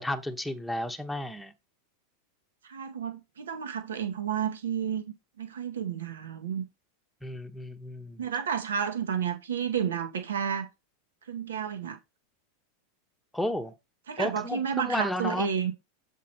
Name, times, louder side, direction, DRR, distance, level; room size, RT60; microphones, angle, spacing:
voice 1, 0.0-1.5 7.2-8.2 13.3-13.7 14.2-15.5, left 1 dB, 5° left, 1.0 m, -32 dB
voice 2, 2.6-5.0 5.4-6.6 8.2-10.7 11.3-12.0 14.1-15.7, right 8 dB, 80° right, 1.0 m, -31 dB
7.4 x 3.7 x 4.3 m
hypercardioid pair, 95°, 0 cm